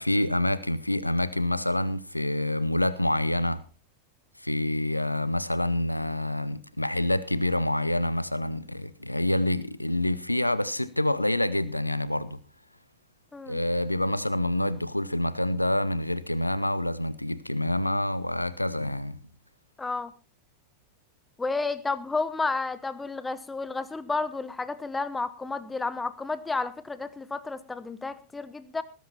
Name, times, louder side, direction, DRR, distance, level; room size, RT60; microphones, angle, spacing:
voice 1, 0.0-3.6 4.4-12.4 13.5-19.2, left 1 dB, 85° left, 0.9 m, -27 dB
voice 2, 19.8-20.1 21.4-28.8, left 3 dB, 10° left, 1.0 m, -31 dB
19.5 x 10.5 x 4.3 m
figure-of-eight pair, 90°, 0 cm